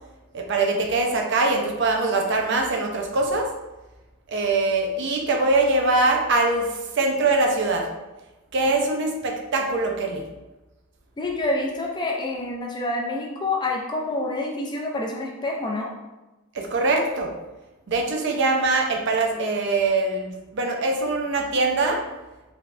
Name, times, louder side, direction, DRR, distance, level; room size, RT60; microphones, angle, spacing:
voice 1, 0.3-3.5 4.3-6.7 6.9-7.9 8.5-10.2 16.5-17.3 17.9-22.0, right 3 dB, 55° right, 2 dB, 0.5 m, -22 dB
voice 2, 11.2-15.9, left 2 dB, 20° left, -1 dB, 0.4 m, -27 dB
3.4 x 3.1 x 2.5 m, 1.1 s
head